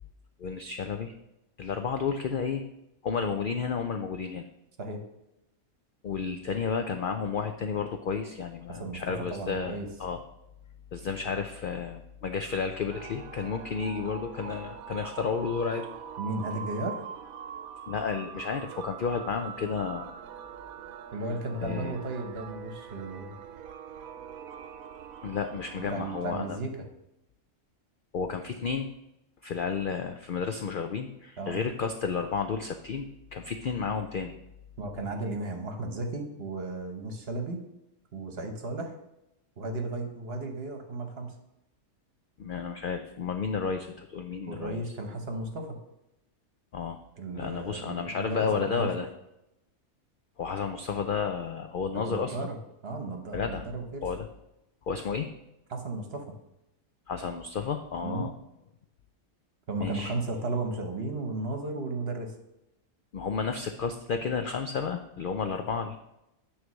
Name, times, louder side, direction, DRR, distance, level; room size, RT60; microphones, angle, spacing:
voice 1, 0.4-1.1 1.6-2.6 3.0-4.4 6.0-10.2 10.9-15.9 17.9-20.1 21.6-22.0 25.2-26.6 28.1-28.9 29.4-34.3 42.4-44.8 46.7-47.0 47.3-49.1 50.4-52.5 53.3-53.7 54.0-54.3 54.9-55.3 57.1-58.3 59.8-60.1 63.1-66.0, left 5 dB, 70° left, 6 dB, 0.5 m, -32 dB
voice 2, 8.7-9.9 16.2-17.0 21.1-23.3 25.8-26.9 31.4-31.6 34.8-37.6 38.1-38.9 39.6-41.4 44.5-45.8 47.2-49.0 51.9-52.6 52.8-54.0 55.7-56.4 58.0-58.3 59.7-62.3, right 2 dB, 50° right, 4 dB, 1.2 m, -34 dB
sound 1, 12.9-26.3, right 7 dB, 85° right, 1.1 m, -43 dB
9.4 x 3.3 x 6.2 m, 0.88 s
omnidirectional pair, 1.4 m